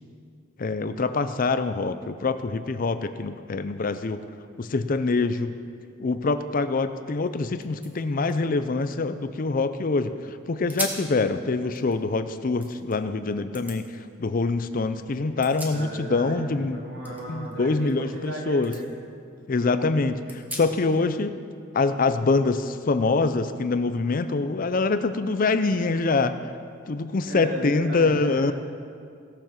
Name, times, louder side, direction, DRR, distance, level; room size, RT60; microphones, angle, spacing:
voice 1, 0.6-4.2 4.6-5.5 6.0-16.8 17.3-18.7 19.5-21.3 21.7-26.4 26.9-28.5, left 3 dB, 40° left, 11 dB, 0.5 m, -25 dB
sound 1, 7.2-7.3 7.6-9.8 10.2-10.3 10.7-11.1 11.6-13.0 13.5-13.8 15.1-16.3 16.5-18.3 18.6-18.8 19.3-19.4 20.3-21.0, right 1 dB, 10° right, 1.3 m, -39 dB
voice 2, 15.7-16.4 16.7-18.9 27.2-28.5, right 1 dB, 65° right, -4 dB, 3.1 m, -35 dB
17.5 x 7.0 x 5.9 m, 2.3 s
head